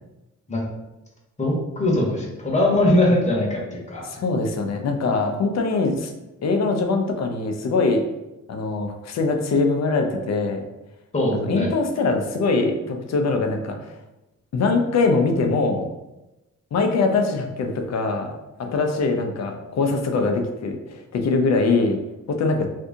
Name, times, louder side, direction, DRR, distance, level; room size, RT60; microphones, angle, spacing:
voice 1, 1.4-4.1 11.1-11.7, left 1 dB, 25° left, -3 dB, 0.9 m, -21 dB
voice 2, 4.0-6.1 6.4-8.1 8.5-10.7 11.3-13.9 14.5-15.9 16.7-18.3 18.6-22.7, left 3 dB, 60° left, 4 dB, 0.5 m, -22 dB
2.6 x 2.6 x 3.6 m, 0.97 s
wide cardioid pair, 135°, 30 cm